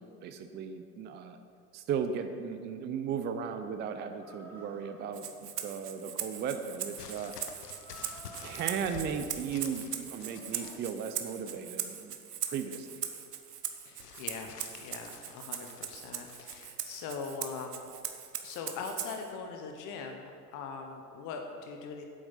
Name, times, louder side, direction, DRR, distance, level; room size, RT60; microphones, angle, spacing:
voice 1, 0.0-1.4 1.7-7.3 8.4-12.2 12.5-13.0, right 7 dB, 25° right, 8 dB, 0.5 m, -36 dB
Chicken rooster, 4.2-11.2, equal, 5° left, 1.6 m, -55 dB
Rattle (instrument), 5.1-19.3, right 9 dB, 85° right, 0.9 m, -40 dB
sound 1, 7.0-11.0 11.4-11.9 14.0-16.7 17.5-17.6, left 7 dB, 80° left, 1.0 m, -50 dB
voice 2, 13.8-14.5 14.7-17.9 18.4-22.0, left 5 dB, 40° left, 3 dB, 1.1 m, -41 dB
8.5 x 7.7 x 5.6 m, 2.3 s
hypercardioid pair, 85°, 47 cm